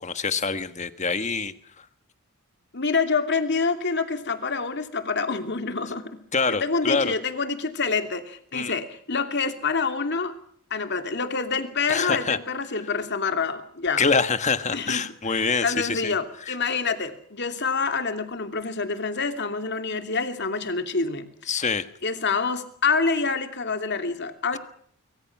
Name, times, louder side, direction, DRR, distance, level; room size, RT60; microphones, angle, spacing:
voice 1, 0.0-1.9 6.3-7.1 8.5-8.7 11.9-12.4 14.0-16.1 16.5-16.6 21.5-21.8, left 4 dB, 30° left, 11 dB, 1.5 m, -25 dB
voice 2, 2.7-6.2 6.5-10.3 10.7-14.0 14.7-21.3 22.0-24.6, left 4 dB, 50° left, 7 dB, 2.8 m, -27 dB
25.0 x 24.5 x 6.1 m, 0.64 s
head